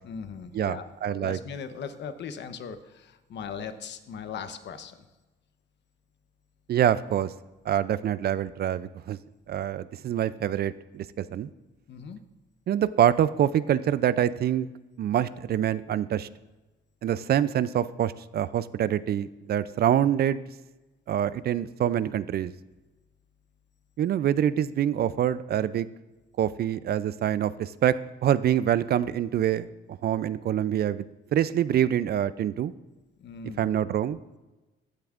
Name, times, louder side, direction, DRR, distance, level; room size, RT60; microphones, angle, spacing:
voice 1, 0.0-5.0 11.9-12.2 33.2-33.7, left 6 dB, 65° left, 10 dB, 0.9 m, -39 dB
voice 2, 1.0-1.4 6.7-7.3 7.7-9.2 9.5-11.5 12.7-14.7 15.0-16.3 17.0-20.4 21.1-22.5 24.0-25.9 26.4-32.7 33.4-34.2, right 10 dB, 55° right, 16 dB, 0.4 m, -25 dB
15.0 x 10.5 x 2.5 m, 1.1 s
cardioid pair, 90°, 20 cm